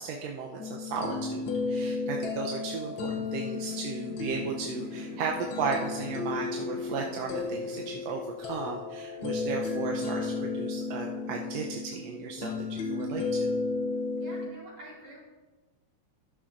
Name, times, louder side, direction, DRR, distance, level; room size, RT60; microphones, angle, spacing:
voice 1, 0.0-13.5, right 5 dB, 75° right, 0 dB, 1.8 m, -35 dB
sound 1, 0.6-14.5, left 4 dB, 70° left, 1.1 m, -33 dB
sound 2, 3.0-8.2, left 1 dB, 30° left, 2.1 m, -48 dB
voice 2, 9.1-9.6 14.2-15.2, equal, 50° right, -5 dB, 4.5 m, -48 dB
13.0 x 11.5 x 2.6 m, 1.3 s
omnidirectional pair, 3.3 m